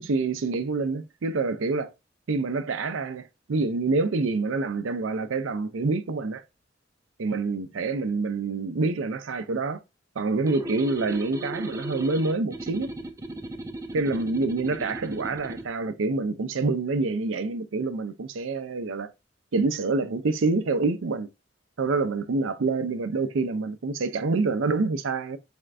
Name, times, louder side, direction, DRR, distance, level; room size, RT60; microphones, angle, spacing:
voice 1, 0.0-1.9 2.3-6.4 7.2-9.8 10.2-12.9 13.9-19.1 19.5-21.3 21.8-25.4, right 3 dB, 90° right, 0.5 m, -27 dB
sound 1, 10.5-15.7, right 1 dB, 15° right, 0.4 m, -37 dB
4.3 x 2.5 x 3.2 m
head